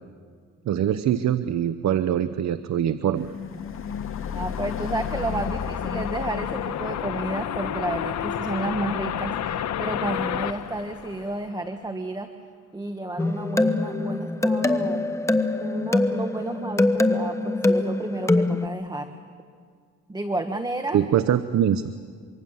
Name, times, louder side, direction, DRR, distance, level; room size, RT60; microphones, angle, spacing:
voice 1, 0.7-3.3 20.9-21.8, right 10 dB, 65° right, 12 dB, 0.9 m, -23 dB
sound 1, 3.1-11.4, left 7 dB, 45° left, 2.1 m, -36 dB
sound 2, 3.3-11.7, left 9 dB, 65° left, 1.2 m, -31 dB
voice 2, 4.3-12.3 12.7-15.1 15.6-19.1 20.1-21.0, right 2 dB, 15° right, 7 dB, 1.3 m, -31 dB
sound 3, 13.2-18.7, left 2 dB, 10° left, 1.0 m, -23 dB
24.5 x 24.5 x 7.2 m, 2.1 s
cardioid pair, 90°, 30 cm